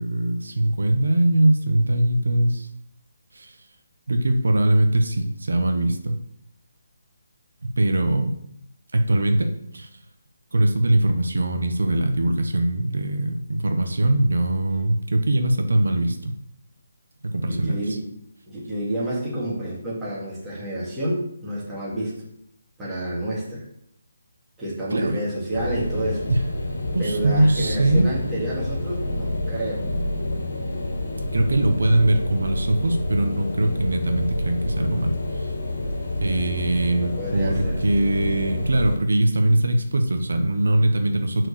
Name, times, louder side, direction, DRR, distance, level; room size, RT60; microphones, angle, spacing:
voice 1, 0.0-2.7 3.3-3.6 4.1-6.2 7.6-8.4 8.9-9.9 10.5-16.3 17.2-18.0 24.9-25.2 26.3-26.4 26.9-28.1 31.3-35.5 36.2-41.5, right 1 dB, 90° right, 5 dB, 1.1 m, -21 dB
voice 2, 17.5-18.1 18.5-22.3 22.8-23.6 24.6-26.3 27.0-29.9 36.8-38.0, right 1 dB, 10° right, -9 dB, 2.4 m, -29 dB
sound 1, 25.5-39.0, left 1 dB, 85° left, 1.6 m, -28 dB
6.0 x 4.6 x 6.4 m, 0.73 s
hypercardioid pair, 170°, 0 cm